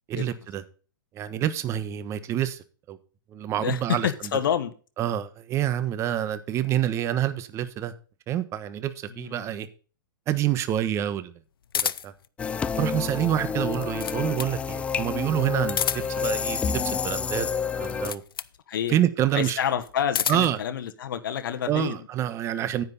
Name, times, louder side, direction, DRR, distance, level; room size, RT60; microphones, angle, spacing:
voice 1, 0.1-0.6 1.1-2.6 2.9-3.0 3.3-4.1 5.0-7.9 8.3-9.7 10.3-11.3 11.7-12.1 12.8-17.5 17.7-18.2 18.9-19.6 20.3-20.6 21.7-22.8, right 11 dB, 25° right, 1.2 m, -27 dB
voice 2, 3.6-4.7 9.1-9.5 18.7-19.0 19.3-22.1, left 9 dB, 70° left, 1.3 m, -28 dB
sound 1, 11.7-12.3 13.5-14.6 15.6-16.3 17.8-18.6 19.8-20.6, left 8 dB, 90° left, 0.6 m, -30 dB
sound 2, 12.4-18.1, left 6 dB, 10° left, 0.4 m, -29 dB
10.0 x 9.4 x 4.0 m
hypercardioid pair, 145°, 12 cm